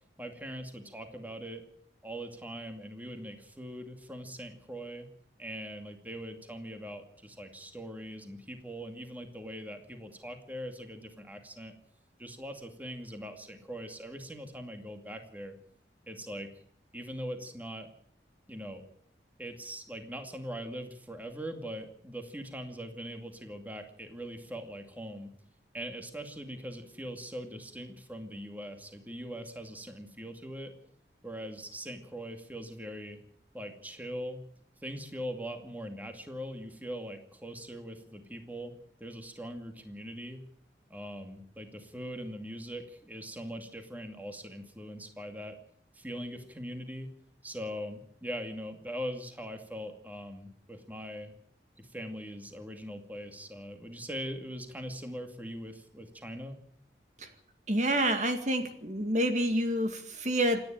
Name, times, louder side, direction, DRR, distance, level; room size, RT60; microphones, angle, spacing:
voice 1, 0.2-1.6 2.0-5.1 5.4-11.7 12.2-15.6 16.1-16.5 16.9-17.9 18.5-18.8 19.4-25.3 25.7-30.7 31.2-33.2 33.5-34.4 34.8-38.7 39.0-40.4 40.9-45.6 45.9-47.1 47.4-51.3 51.8-56.6, equal, 10° right, 5 dB, 2.4 m, -41 dB
voice 2, 57.7-60.6, right 1 dB, 40° right, 6 dB, 2.1 m, -28 dB
28.0 x 10.5 x 9.0 m, 0.63 s
head